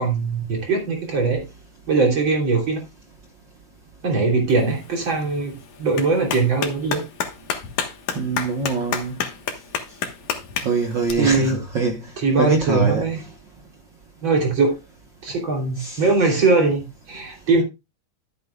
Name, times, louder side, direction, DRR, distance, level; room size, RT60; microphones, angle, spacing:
voice 1, 0.0-1.4 1.9-2.8 4.0-7.0 11.1-11.6 12.2-13.2 14.2-14.8 15.2-17.6, right 3 dB, 40° right, 3.8 m, -21 dB
Clapping, 4.5-11.1, left 7 dB, 70° left, 2.6 m, -31 dB
voice 2, 8.1-9.2 10.6-12.0 12.4-13.1 15.8-16.0, right 4 dB, 60° right, 1.2 m, -23 dB
13.5 x 8.7 x 2.3 m
omnidirectional pair, 3.5 m